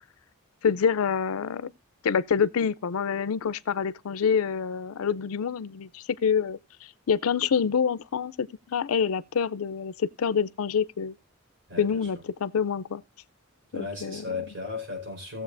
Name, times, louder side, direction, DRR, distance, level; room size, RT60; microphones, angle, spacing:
voice 1, 0.6-1.7 2.0-6.6 7.1-11.2 11.8-13.0 13.7-14.2, left 6 dB, 75° left, 0.5 m, -26 dB
voice 2, 11.7-12.1 13.7-15.4, left 4 dB, 55° right, 4.4 m, -35 dB
17.5 x 7.4 x 2.5 m
head